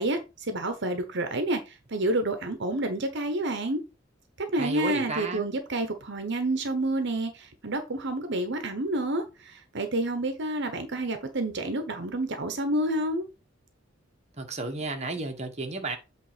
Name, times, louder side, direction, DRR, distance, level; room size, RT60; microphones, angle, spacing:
voice 1, 0.0-3.8 4.4-13.3, right 1 dB, 65° right, 1.1 m, -29 dB
voice 2, 4.6-5.5 14.4-16.0, right 2 dB, 35° right, 1.4 m, -32 dB
8.5 x 3.5 x 5.0 m
head